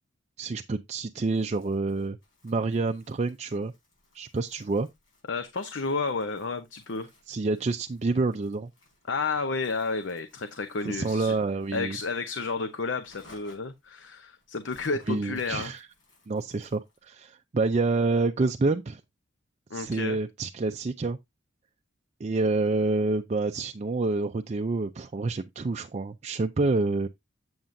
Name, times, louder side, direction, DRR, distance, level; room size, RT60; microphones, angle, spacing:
voice 1, 0.4-2.2 2.4-3.7 4.1-4.9 7.3-8.7 10.9-12.0 15.1-15.9 16.3-19.0 19.7-21.2 22.2-27.1, right 3 dB, 35° right, 0.4 m, -28 dB
Crumpling crinkling, 1.3-17.1, left 2 dB, 85° left, 5.2 m, -61 dB
voice 2, 5.3-7.1 9.1-11.4 11.7-15.7 19.7-20.2, left 4 dB, 65° left, 0.7 m, -31 dB
7.9 x 7.3 x 2.6 m
head